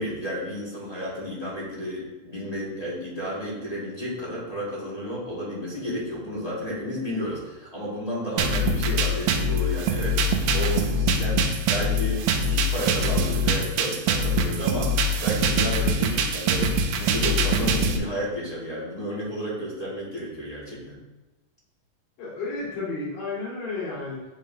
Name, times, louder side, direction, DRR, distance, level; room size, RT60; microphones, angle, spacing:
voice 1, 0.0-12.2 12.5-21.0, equal, 25° left, -7 dB, 0.9 m, -32 dB
sound 1, 8.4-18.0, right 1 dB, 85° right, 2.4 m, -23 dB
voice 2, 22.2-24.2, left 3 dB, 75° left, -7 dB, 4.0 m, -32 dB
9.6 x 5.3 x 2.7 m, 1.1 s
omnidirectional pair, 3.9 m